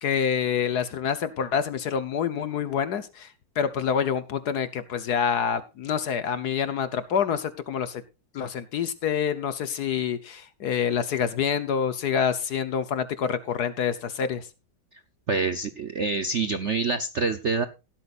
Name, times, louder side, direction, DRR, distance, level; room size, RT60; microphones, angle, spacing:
voice 1, 0.0-3.3 3.6-8.0 8.3-14.5, left 7 dB, 60° left, 12 dB, 1.3 m, -27 dB
voice 2, 15.3-17.7, right 4 dB, 60° right, 10 dB, 0.7 m, -26 dB
16.5 x 12.5 x 2.5 m, 0.29 s
omnidirectional pair, 2.2 m